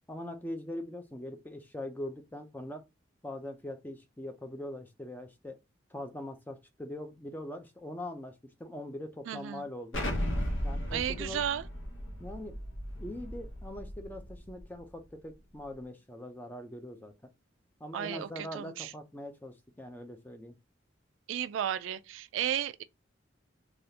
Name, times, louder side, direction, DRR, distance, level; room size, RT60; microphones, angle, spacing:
voice 1, 0.1-2.8 3.2-5.6 5.9-10.0 10.6-11.4 12.2-12.6 13.0-17.3 17.8-20.6, left 1 dB, 10° left, 0.5 m, -42 dB
voice 2, 9.3-9.6 10.9-11.7 17.9-18.9 21.3-22.8, right 10 dB, 80° right, 0.3 m, -34 dB
Explosion, 9.9-14.6, equal, 85° left, 1.0 m, -36 dB
3.3 x 2.4 x 2.7 m
head